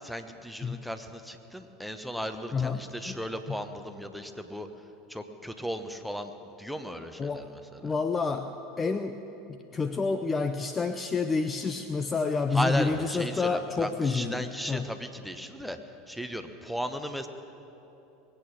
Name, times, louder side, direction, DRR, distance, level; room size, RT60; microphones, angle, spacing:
voice 1, 0.0-4.7 5.1-6.3 6.6-7.9 12.5-15.8 16.1-17.3, equal, ahead, 8 dB, 1.1 m, -35 dB
voice 2, 2.5-3.2 3.5-3.6 7.2-7.5 7.8-9.2 9.5-14.9, left 4 dB, 25° left, 8 dB, 0.6 m, -29 dB
21.0 x 8.9 x 6.4 m, 3.0 s
figure-of-eight pair, 75°, 0 cm